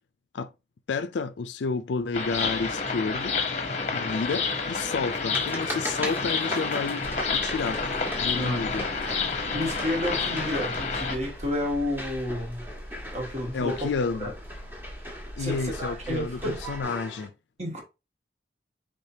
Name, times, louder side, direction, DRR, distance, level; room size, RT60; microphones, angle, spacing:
voice 1, 0.9-3.4 3.9-7.1 7.3-7.8 8.2-8.9 13.5-14.4 15.4-17.3, left 4 dB, 75° left, 0.4 m, -30 dB
sound 1, 2.1-11.2, left 4 dB, 40° left, 0.8 m, -29 dB
sound 2, 4.2-17.3, equal, 10° right, 1.3 m, -40 dB
sound 3, 7.0-16.8, equal, 65° right, 1.6 m, -42 dB
voice 2, 8.3-8.7 9.5-12.7 13.1-13.9 14.2-14.3 15.4-16.8 17.6-17.8, left 1 dB, 40° right, 1.5 m, -31 dB
4.9 x 3.6 x 2.7 m
head